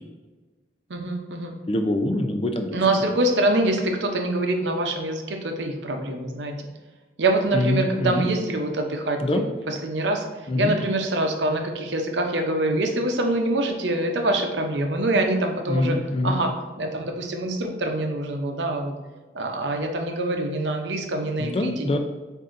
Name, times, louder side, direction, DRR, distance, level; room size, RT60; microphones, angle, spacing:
voice 1, 0.9-1.6 2.7-6.6 7.2-16.0 16.2-18.9 19.3-22.0, right 2 dB, 90° right, 4 dB, 0.7 m, -25 dB
voice 2, 1.7-2.8 7.5-8.2 9.2-9.4 10.5-10.7 15.7-16.4 21.4-22.0, left 1 dB, 30° left, 5 dB, 0.4 m, -24 dB
7.6 x 2.7 x 2.5 m, 1.3 s
head